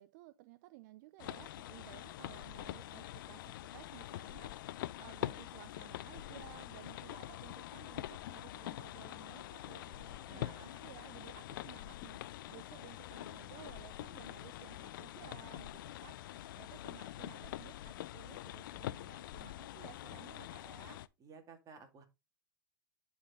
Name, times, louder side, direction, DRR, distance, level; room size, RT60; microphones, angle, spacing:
voice 1, 0.0-21.0, right 17 dB, 55° right, 0.5 m, -56 dB
sound 1, 1.2-21.1, left 14 dB, 70° left, 0.5 m, -45 dB
voice 2, 10.1-10.8 21.2-22.0, right 5 dB, 30° right, 2.2 m, -56 dB
9.8 x 4.3 x 3.7 m
hypercardioid pair, 115°, 11 cm